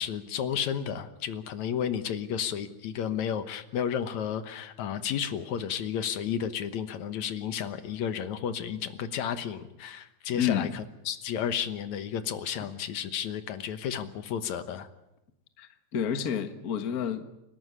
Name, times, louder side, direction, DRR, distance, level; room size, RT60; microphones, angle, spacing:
voice 1, 0.0-14.9, left 8 dB, 75° left, 11 dB, 2.5 m, -32 dB
voice 2, 10.3-10.7 15.6-17.2, left 8 dB, 40° left, 9 dB, 1.5 m, -29 dB
29.0 x 12.5 x 9.9 m, 0.91 s
omnidirectional pair, 3.3 m